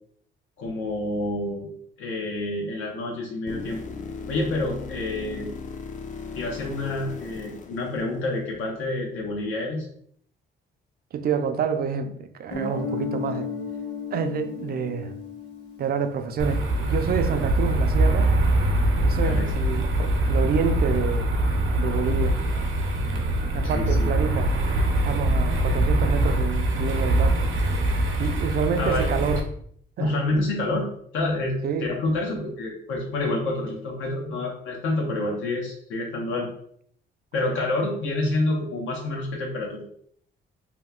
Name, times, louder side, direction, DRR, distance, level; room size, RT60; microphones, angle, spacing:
voice 1, 0.6-1.7 2.0-3.8 4.3-5.5 6.3-9.9 19.2-19.5 23.6-24.1 28.8-29.1 30.0-30.9 31.1-36.5 37.3-39.8, left 2 dB, 85° left, 0.7 m, -28 dB
sound 1, 3.5-8.5 12.5-12.6, left 5 dB, 40° left, 0.4 m, -38 dB
voice 2, 11.1-13.5 14.1-15.1 15.8-18.4 19.0-21.3 21.8-22.4 23.2-24.5 25.0-27.4 28.2-29.4 30.0-30.1 31.6-31.9, right 6 dB, 50° right, 0.4 m, -28 dB
Guitar, 12.5-17.1, left 4 dB, 65° left, 1.3 m, -34 dB
sound 2, 16.4-29.4, right 1 dB, 75° right, 0.7 m, -23 dB
2.9 x 2.2 x 3.6 m
cardioid pair, 90°, 20 cm